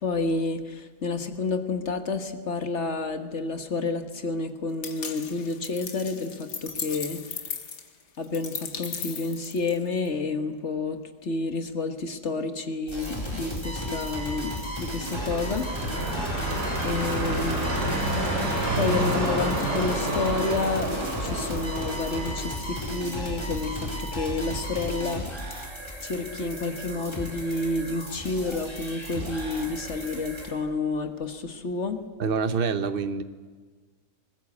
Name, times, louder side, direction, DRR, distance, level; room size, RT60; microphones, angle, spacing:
voice 1, 0.0-7.4 8.2-15.7 16.8-17.7 18.7-20.9 21.2-25.6 26.0-32.0, left 3 dB, 45° left, 8 dB, 1.5 m, -30 dB
sound 1, 4.8-10.1, left 6 dB, 80° left, 2.2 m, -37 dB
sound 2, 12.9-30.5, equal, 15° left, 4.5 m, -34 dB
sound 3, 15.0-22.3, right 1 dB, 80° right, 6.1 m, -29 dB
voice 2, 32.2-33.2, right 5 dB, 40° right, 11 dB, 1.0 m, -26 dB
20.0 x 19.5 x 8.5 m, 1.5 s
omnidirectional pair, 1.8 m